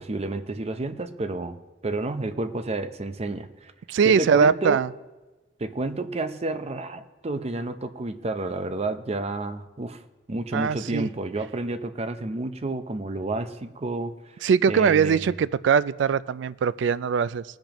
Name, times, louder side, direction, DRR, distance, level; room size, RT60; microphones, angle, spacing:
voice 1, 0.0-1.6 1.8-3.7 4.0-4.8 5.6-10.0 10.3-14.4 14.6-15.3, right 2 dB, 35° right, 0.6 m, -30 dB
voice 2, 3.9-4.9 10.5-11.1 14.4-17.4, right 6 dB, 80° right, 0.3 m, -21 dB
19.0 x 10.5 x 3.0 m
head